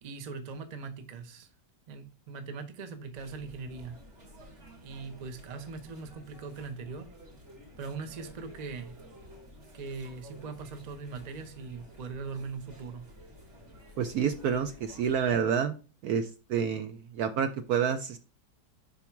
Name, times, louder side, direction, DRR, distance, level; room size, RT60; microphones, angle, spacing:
voice 1, 0.0-1.5 1.9-4.0 4.8-7.1 7.8-9.0 9.7-13.1, right 4 dB, 50° right, 0.5 m, -40 dB
sound 1, 3.1-15.4, equal, 35° right, 2.3 m, -52 dB
voice 2, 14.0-15.8 16.0-18.2, right 7 dB, 70° right, 0.9 m, -29 dB
5.4 x 4.6 x 4.5 m
omnidirectional pair, 2.0 m